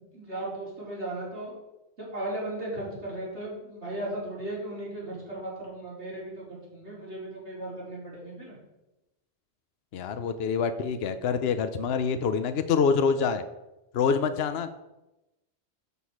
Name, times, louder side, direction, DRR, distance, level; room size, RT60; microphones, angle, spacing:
voice 1, 0.0-1.5 2.0-8.6, right 1 dB, 80° right, -6 dB, 4.5 m, -36 dB
voice 2, 9.9-13.4 13.9-14.7, left 6 dB, 65° left, 9 dB, 0.9 m, -26 dB
12.5 x 6.2 x 4.9 m, 0.97 s
omnidirectional pair, 1.1 m